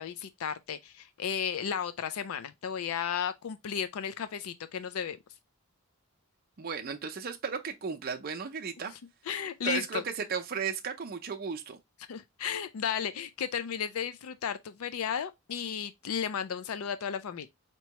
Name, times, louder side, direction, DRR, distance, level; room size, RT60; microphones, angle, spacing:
voice 1, 0.0-5.2 9.3-10.0 12.1-17.5, left 7 dB, 80° left, 0.4 m, -34 dB
voice 2, 6.6-8.9 9.6-11.8, right 6 dB, 45° right, 0.6 m, -35 dB
4.5 x 3.0 x 2.9 m
head